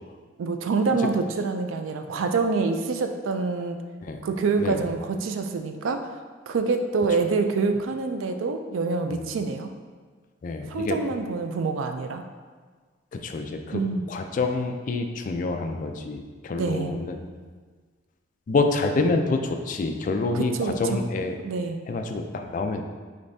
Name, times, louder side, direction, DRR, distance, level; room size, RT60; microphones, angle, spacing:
voice 1, 0.4-3.8 4.2-6.1 6.5-9.7 10.7-12.2 13.7-14.0 16.5-16.9 20.3-21.0 21.4-21.8, right 4 dB, 85° right, 6 dB, 0.4 m, -26 dB
voice 2, 10.4-11.0 13.1-13.8 14.1-17.2 18.5-21.4 21.9-22.8, left 3 dB, 40° left, 5 dB, 0.3 m, -27 dB
5.1 x 3.3 x 2.6 m, 1.5 s
head